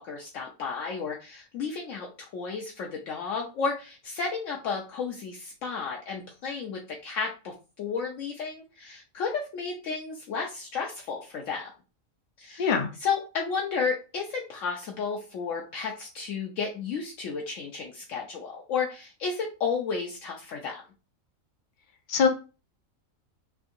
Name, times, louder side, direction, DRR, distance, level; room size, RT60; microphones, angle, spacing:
voice 1, 0.0-11.7 12.4-12.7 13.0-20.8, left 5 dB, 70° left, -1 dB, 0.9 m, -32 dB
voice 2, 12.6-12.9 22.1-22.3, left 6 dB, 55° left, 5 dB, 0.5 m, -22 dB
3.5 x 2.7 x 2.4 m, 0.32 s
omnidirectional pair, 1.4 m